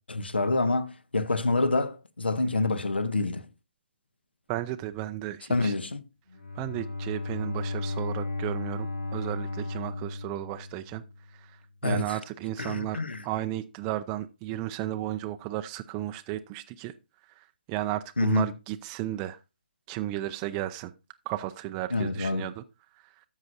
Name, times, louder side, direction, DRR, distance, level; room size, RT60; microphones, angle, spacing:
voice 1, 0.1-3.5 5.5-6.0 11.8-12.2 12.6-13.2 18.2-18.5 21.9-22.5, left 3 dB, 85° left, 0.9 m, -27 dB
voice 2, 4.5-5.7 6.6-11.0 11.3-16.9 17.3-19.4 19.9-20.9 21.3-22.6 23.0-23.1, right 14 dB, 20° right, 0.3 m, -34 dB
Bowed string instrument, 6.3-11.3, left 2 dB, 60° left, 6.1 m, -35 dB
13.0 x 6.4 x 2.6 m
figure-of-eight pair, 140°, 6 cm